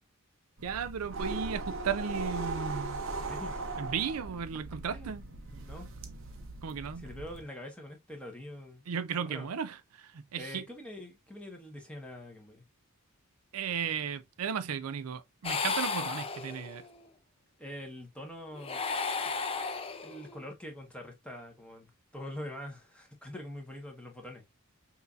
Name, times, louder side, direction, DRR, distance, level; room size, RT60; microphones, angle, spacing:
sound 1, 0.6-7.4, right 3 dB, 60° right, 0.9 m, -39 dB
voice 1, 0.6-3.0 3.8-5.3 6.6-7.1 8.9-10.6 13.5-16.8, right 7 dB, 90° right, 0.5 m, -35 dB
voice 2, 3.2-3.8 4.9-5.1 5.5-5.9 7.0-8.8 9.3-9.5 10.4-12.6 17.6-18.8 20.0-24.4, left 1 dB, 5° left, 1.2 m, -44 dB
sound 2, 15.4-16.9 18.5-20.4, left 4 dB, 25° left, 0.5 m, -34 dB
5.5 x 2.7 x 2.4 m
head